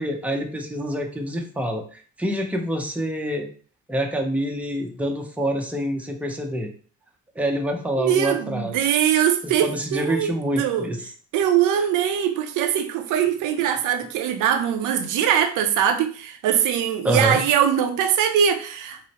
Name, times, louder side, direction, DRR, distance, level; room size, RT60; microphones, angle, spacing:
voice 1, 0.0-3.5 3.9-6.7 7.4-8.8 9.4-11.0 17.0-17.4, right 1 dB, 5° right, 2 dB, 0.6 m, -26 dB
voice 2, 8.0-10.9 11.3-19.0, right 9 dB, 85° right, 6 dB, 0.5 m, -22 dB
4.9 x 2.0 x 2.9 m, 0.43 s
cardioid pair, 90°, 30 cm